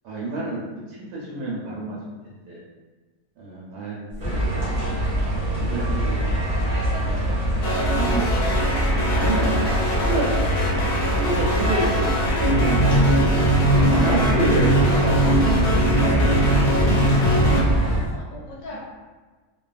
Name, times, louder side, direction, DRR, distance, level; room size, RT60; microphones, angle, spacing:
voice 1, 0.0-2.0 2.5-2.6 3.4-4.4 4.7-4.8 5.6-6.6 6.9-7.3 7.9-8.2 9.1-10.3 11.1-13.3 13.9-15.3 15.7-16.5, right 2 dB, 85° right, -5 dB, 1.2 m, -29 dB
sound 1, 4.1-18.1, left 1 dB, 5° left, 0.4 m, -33 dB
sound 2, 4.2-18.0, right 1 dB, 55° right, 0.5 m, -24 dB
sound 3, 7.6-17.6, right 1 dB, 90° left, 1.1 m, -22 dB
voice 2, 7.9-8.4 16.7-18.8, left 2 dB, 70° left, -4 dB, 0.9 m, -41 dB
2.5 x 2.3 x 2.3 m, 1.3 s
omnidirectional pair, 1.6 m